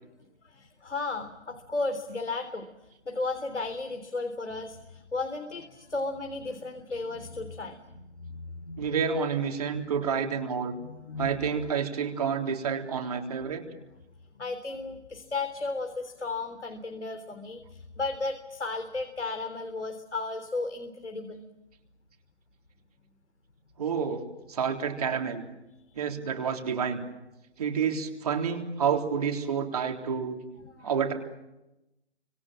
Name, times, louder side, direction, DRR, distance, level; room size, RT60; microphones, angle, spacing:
voice 1, 0.4-2.7 3.1-9.0 10.8-11.4 14.4-21.4 30.6-30.9, left 3 dB, 85° left, 6 dB, 3.6 m, -34 dB
voice 2, 8.8-10.7 11.2-13.7 23.8-25.4 26.0-27.0 27.6-30.4 30.8-31.1, right 6 dB, 35° right, 3 dB, 3.6 m, -29 dB
30.0 x 26.0 x 7.5 m, 0.95 s
figure-of-eight pair, 165°, 34 cm